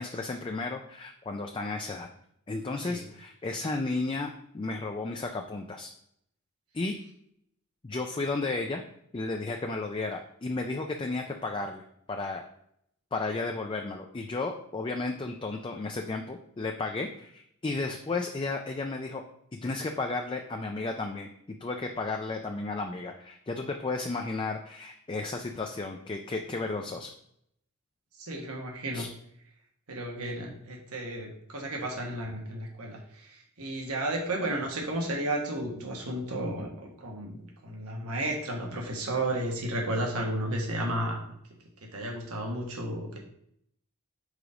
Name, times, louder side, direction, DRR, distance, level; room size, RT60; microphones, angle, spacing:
voice 1, 0.0-2.1 2.5-5.9 6.7-7.0 7.8-8.8 9.1-12.4 13.1-19.2 19.5-27.1 28.9-29.1, left 3 dB, 20° left, 3 dB, 0.4 m, -33 dB
voice 2, 28.2-29.1 29.9-41.3 41.8-43.2, right 1 dB, 80° right, 0 dB, 1.4 m, -33 dB
4.9 x 3.9 x 5.0 m, 0.71 s
head